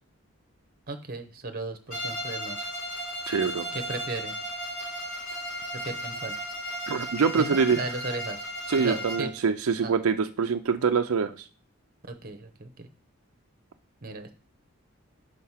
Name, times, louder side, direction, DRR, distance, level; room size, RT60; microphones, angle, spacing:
voice 1, 0.9-2.7 3.6-4.3 5.7-6.3 7.4-8.4 8.8-9.3 9.8-9.9 12.1-12.9 14.0-14.3, right 3 dB, 45° right, 6 dB, 0.9 m, -36 dB
Bowed string instrument, 1.9-9.4, equal, 80° left, 3.8 m, -35 dB
voice 2, 3.3-3.7 6.9-7.8 8.7-11.5, right 5 dB, 90° right, 7 dB, 0.5 m, -25 dB
5.1 x 4.7 x 5.6 m, 0.39 s
head